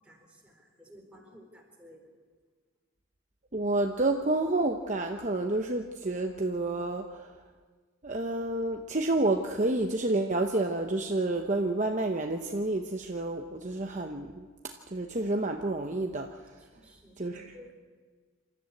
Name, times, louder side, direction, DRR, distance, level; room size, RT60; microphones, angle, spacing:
voice 1, 0.0-2.1 16.6-17.7, equal, 5° right, -1 dB, 4.2 m, -54 dB
voice 2, 3.5-7.3 8.0-16.4 17.2-17.5, right 2 dB, 35° right, 3 dB, 0.9 m, -29 dB
27.5 x 13.5 x 8.4 m, 1.5 s
head